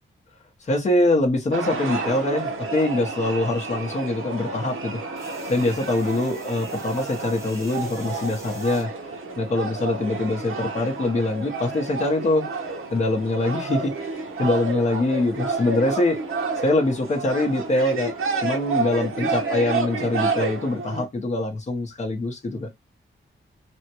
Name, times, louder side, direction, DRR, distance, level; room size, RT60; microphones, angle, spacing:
voice 1, 0.6-12.5 12.9-16.2 16.6-22.7, left 2 dB, 35° left, 0.7 m, -24 dB
sound 1, 1.5-21.1, right 4 dB, 85° right, 0.8 m, -30 dB
sound 2, 5.2-8.9 9.5-10.0 11.2-11.3, equal, 15° right, 1.0 m, -47 dB
3.4 x 2.1 x 2.8 m
wide cardioid pair, 155°, 21 cm